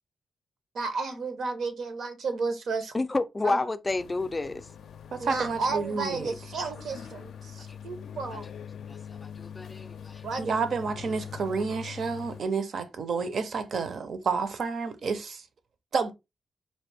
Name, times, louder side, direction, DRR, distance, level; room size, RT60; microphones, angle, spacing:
voice 1, 0.7-2.9 3.4-3.6 5.2-8.5 10.2-10.7, right 4 dB, 85° right, 0.9 m, -32 dB
voice 2, 2.9-4.7 8.9-10.2, left 2 dB, 20° left, 0.4 m, -30 dB
sound 1, 3.9-12.4, left 8 dB, 85° left, 0.4 m, -43 dB
voice 3, 5.1-6.3 10.4-15.4 15.9-16.1, right 5 dB, 60° right, 0.6 m, -30 dB
4.2 x 2.6 x 3.3 m
wide cardioid pair, 130°, 0 cm